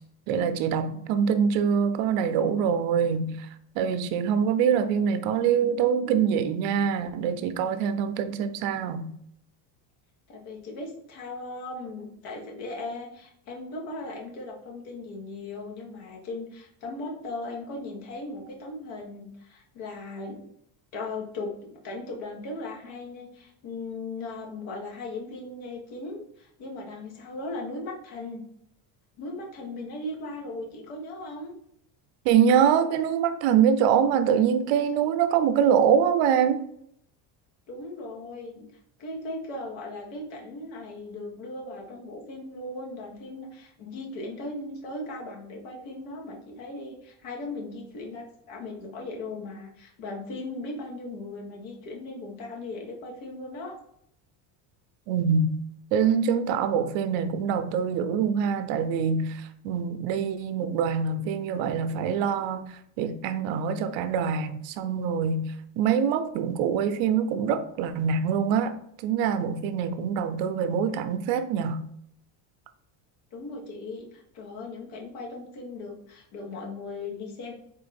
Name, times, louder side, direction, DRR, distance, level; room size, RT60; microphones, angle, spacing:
voice 1, 0.3-3.5 3.8-9.1 32.2-36.6 55.1-55.6 55.9-71.9, right 7 dB, 70° right, 0.6 m, -24 dB
voice 2, 10.3-20.5 20.9-28.5 29.2-31.5 37.7-38.7 39.0-53.8 73.3-77.5, left 2 dB, 75° left, 1.4 m, -38 dB
3.8 x 2.5 x 4.1 m
cardioid pair, 115°, 48 cm